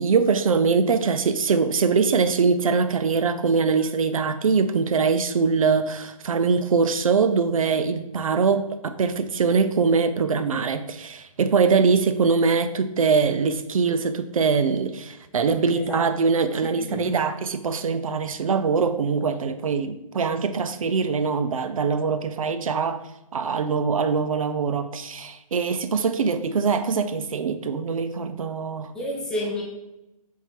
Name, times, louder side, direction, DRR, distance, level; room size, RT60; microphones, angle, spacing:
voice 1, 0.0-23.0 23.3-29.0, right 5 dB, 70° right, 10 dB, 0.4 m, -23 dB
voice 2, 15.7-16.1 16.6-17.2 28.9-29.6, left 1 dB, 5° left, -3 dB, 0.5 m, -30 dB
3.7 x 2.7 x 4.4 m, 0.93 s
figure-of-eight pair, 140°, 18 cm